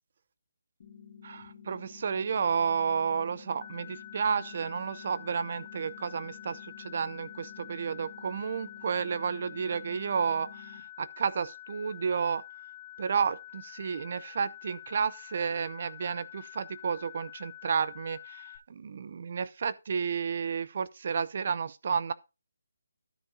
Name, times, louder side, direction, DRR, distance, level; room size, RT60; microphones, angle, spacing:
sound 1, 0.8-10.8, left 7 dB, 35° left, 3.0 m, -51 dB
voice 1, 1.2-12.4 13.0-22.1, right 6 dB, 35° right, 0.6 m, -31 dB
sound 2, 3.6-18.6, left 13 dB, 20° left, 0.8 m, -48 dB
13.0 x 5.2 x 3.7 m
hypercardioid pair, 175°, 0 cm